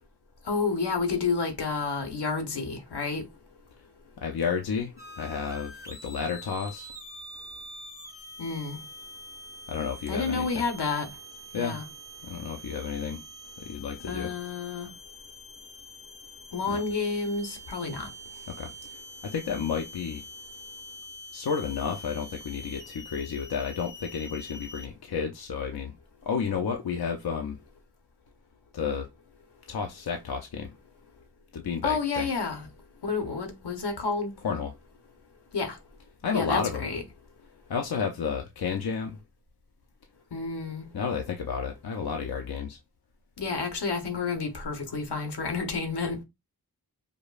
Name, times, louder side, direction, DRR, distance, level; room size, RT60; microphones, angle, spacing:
voice 1, 0.4-3.2 8.4-8.8 10.1-11.1 11.5-11.8 14.1-14.9 16.5-18.1 31.8-32.7 33.0-34.3 35.5-35.8 36.3-37.0 40.3-40.8 43.4-46.2, left 4 dB, 85° left, 1.0 m, -30 dB
voice 2, 4.2-6.9 9.7-10.6 11.5-11.8 12.2-13.2 13.6-14.3 16.7-16.8 18.5-20.2 21.3-26.0 26.2-27.6 28.7-29.1 29.7-30.7 31.5-32.3 34.4-34.7 36.2-36.8 37.7-39.2 40.9-42.8, left 6 dB, 70° left, 0.6 m, -31 dB
sound 1, 5.0-24.9, equal, 10° right, 0.9 m, -45 dB
5.1 x 2.1 x 2.4 m
wide cardioid pair, 65°, 39 cm